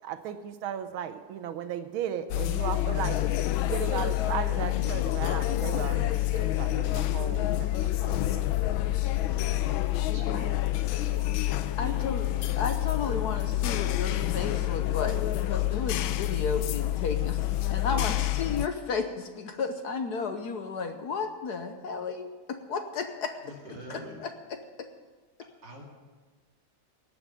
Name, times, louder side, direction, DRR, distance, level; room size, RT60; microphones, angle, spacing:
voice 1, 0.0-8.5, right 9 dB, 85° right, 10 dB, 1.7 m, -36 dB
sound 1, 2.3-18.7, left 14 dB, 85° left, 1.4 m, -28 dB
voice 2, 10.1-10.6 11.0-11.4 11.8-12.1 23.4-24.2 25.6-25.8, right 1 dB, 55° right, -1 dB, 3.0 m, -44 dB
voice 3, 11.8-23.4 23.9-24.6, left 5 dB, 60° left, 7 dB, 1.3 m, -33 dB
18.0 x 6.3 x 9.2 m, 1.4 s
omnidirectional pair, 2.2 m